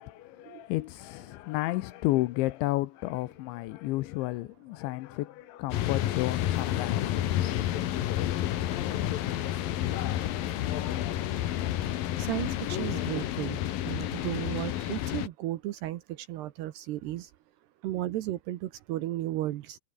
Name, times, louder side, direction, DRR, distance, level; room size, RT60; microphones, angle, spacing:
voice 1, 0.0-7.2, left 18 dB, 80° left, 2.9 m, -32 dB
sound 1, 5.7-15.3, left 12 dB, 65° left, 2.4 m, -30 dB
voice 2, 12.2-13.6 13.9-16.0 16.3-17.3 17.8-19.8, right 15 dB, 75° right, 2.6 m, -34 dB
omnidirectional pair, 5.7 m